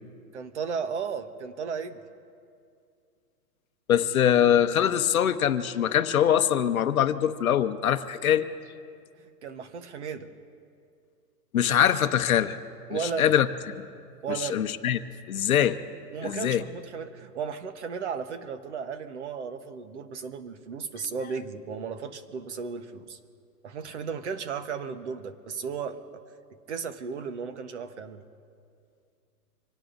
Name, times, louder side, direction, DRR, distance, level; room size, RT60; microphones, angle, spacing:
voice 1, 0.3-2.0 9.4-10.3 12.9-13.3 14.2-14.6 16.1-23.2 23.6-26.0 26.7-28.2, right 6 dB, 45° right, 9 dB, 1.1 m, -35 dB
voice 2, 3.9-8.5 11.5-12.6 12.9-13.5 14.3-15.0 15.3-15.8 16.2-16.6, left 10 dB, 60° left, 9 dB, 0.9 m, -23 dB
26.5 x 18.0 x 2.6 m, 2.3 s
hypercardioid pair, 175°, 48 cm